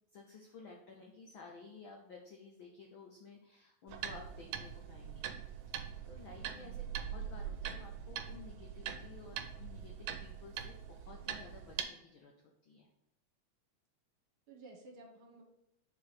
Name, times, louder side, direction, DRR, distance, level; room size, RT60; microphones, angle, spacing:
voice 1, 0.1-5.3 5.7-5.8 6.0-12.3 12.6-12.9, left 4 dB, 80° left, 1 dB, 1.1 m, -54 dB
sound 1, 3.9-11.8, right 8 dB, 85° right, 2.1 m, -43 dB
voice 2, 6.4-6.8 14.5-15.4, right 3 dB, 55° right, 1 dB, 1.9 m, -55 dB
5.4 x 4.8 x 6.0 m, 0.85 s
omnidirectional pair, 3.4 m